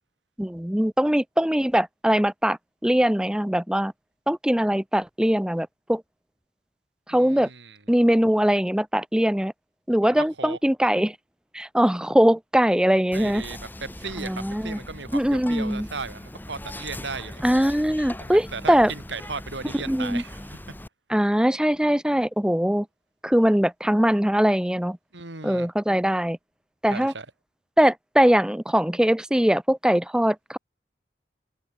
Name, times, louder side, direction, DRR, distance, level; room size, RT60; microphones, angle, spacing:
voice 1, 0.4-2.6 2.8-3.9 4.3-6.0 7.1-7.5 7.9-9.5 9.9-11.1 11.5-13.4 14.2-14.8 15.1-15.9 17.4-18.9 19.9-20.2 21.1-22.9 23.2-25.0 25.4-26.4 26.8-27.1 27.8-30.6, equal, 5° right, 0.6 m, -21 dB
voice 2, 7.1-7.8 10.0-10.6 13.1-17.4 18.2-20.6 25.1-25.7 26.9-27.3, right 4 dB, 90° right, 3.4 m, -36 dB
Whispering, 13.1-20.9, left 1 dB, 10° left, 1.8 m, -40 dB
head